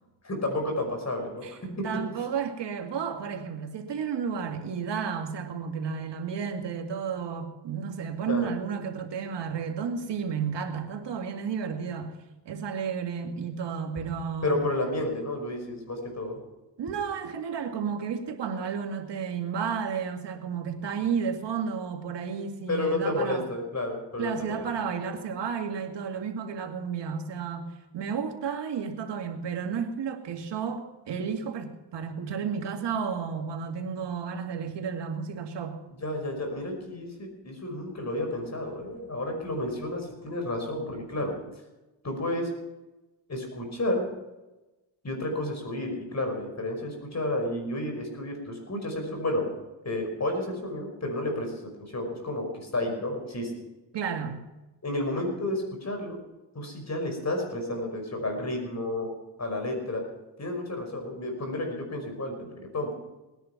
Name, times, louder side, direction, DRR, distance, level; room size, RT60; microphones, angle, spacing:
voice 1, 0.2-1.4 1.8-1.9 8.3-8.5 14.4-16.4 22.7-24.7 36.0-41.4 42.0-42.5 43.3-44.1 45.0-49.5 49.8-51.5 51.8-53.5 54.8-56.2 56.5-59.1 59.4-60.0 60.4-62.9, left 1 dB, 40° left, 5.7 m, -31 dB
voice 2, 1.4-12.2 12.5-14.6 16.8-23.4 24.2-27.7 27.9-35.8 53.9-54.5, right 6 dB, 75° right, 2.3 m, -32 dB
19.0 x 10.5 x 6.0 m
cardioid pair, 70°, 43 cm